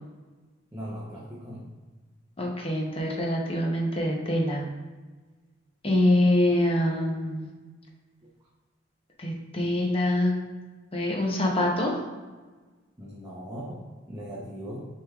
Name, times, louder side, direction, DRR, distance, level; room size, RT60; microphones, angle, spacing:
voice 1, 0.7-1.6 13.0-13.8 14.1-14.9, equal, 15° right, -6 dB, 0.6 m, -38 dB
voice 2, 2.4-4.6 5.8-7.5 9.2-10.4 10.9-11.9, left 1 dB, 30° left, 0 dB, 0.7 m, -25 dB
6.8 x 3.2 x 2.3 m, 1.3 s
head